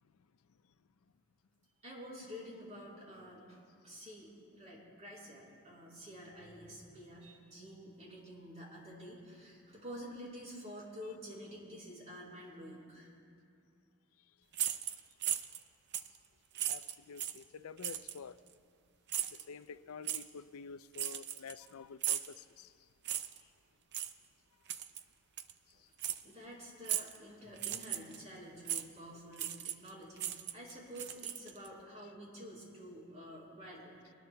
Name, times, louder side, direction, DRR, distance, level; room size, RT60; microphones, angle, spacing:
voice 1, 1.8-13.1 26.2-34.1, equal, 35° right, 4.0 m, -49 dB
sound 1, 14.5-15.6 15.9-16.2 16.5-17.4 17.8-18.2 19.1-19.4 20.0-20.2 20.9-21.7 22.0-22.3 23.0-23.4 23.9-24.1 24.7-25.0 25.4-25.5 26.0-26.2 26.8-27.2 27.6-28.2 28.7-28.8 29.4-29.9 30.2-31.7, right 11 dB, 55° right, 0.5 m, -37 dB
voice 2, 16.7-18.4 19.3-22.7 25.7-25.9, left 5 dB, 85° left, 0.5 m, -49 dB
23.5 x 19.5 x 2.3 m
head